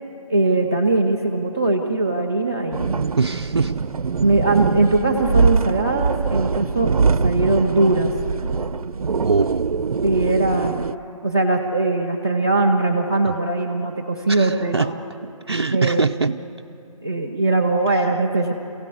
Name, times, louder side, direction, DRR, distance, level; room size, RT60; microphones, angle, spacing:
voice 1, 0.3-3.0 4.2-6.9 7.2-8.1 10.0-10.9 11.2-15.0 15.7-16.0 17.0-18.5, right 2 dB, 5° left, -1 dB, 0.6 m, -20 dB
sound 1, 2.7-11.0, right 5 dB, 90° right, 0.6 m, -23 dB
voice 2, 3.2-3.7 9.2-9.7 14.3-14.9 15.5-16.4, right 4 dB, 45° right, 4 dB, 0.4 m, -22 dB
28.5 x 16.5 x 8.2 m, 2.7 s
hypercardioid pair, 180°, 18 cm